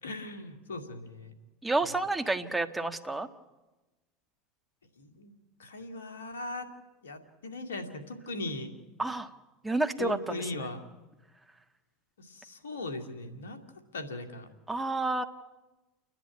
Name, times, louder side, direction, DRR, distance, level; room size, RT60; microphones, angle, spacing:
voice 1, 0.0-1.3 1.9-2.0 5.0-5.3 5.6-6.7 7.0-8.7 10.0-10.9 12.2-13.6 13.9-14.5, left 2 dB, 90° left, 8 dB, 2.2 m, -39 dB
voice 2, 1.6-3.3 9.0-9.3 9.6-10.7 14.7-15.2, right 2 dB, 10° right, 7 dB, 1.5 m, -30 dB
30.0 x 10.5 x 9.6 m, 1.1 s
hypercardioid pair, 85°, 0 cm